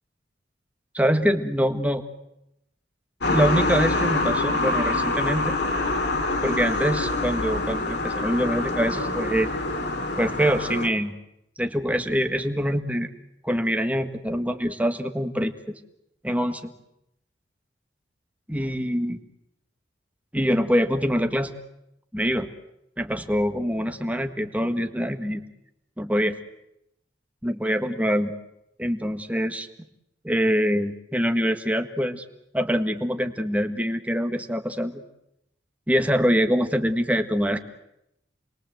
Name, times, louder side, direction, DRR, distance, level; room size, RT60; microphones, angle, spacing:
voice 1, 0.9-2.0 3.3-5.5 6.4-9.5 10.2-11.2 11.6-13.1 13.4-15.8 16.2-16.7 18.5-19.2 20.3-21.5 22.1-22.5 23.0-25.4 26.0-26.3 27.4-28.3 28.8-29.7 30.2-32.2 32.5-35.0 35.9-37.6, equal, 10° right, 7 dB, 1.6 m, -24 dB
sound 1, 3.2-10.9, left 2 dB, 65° left, 2.9 m, -25 dB
29.0 x 22.0 x 7.9 m, 0.82 s
head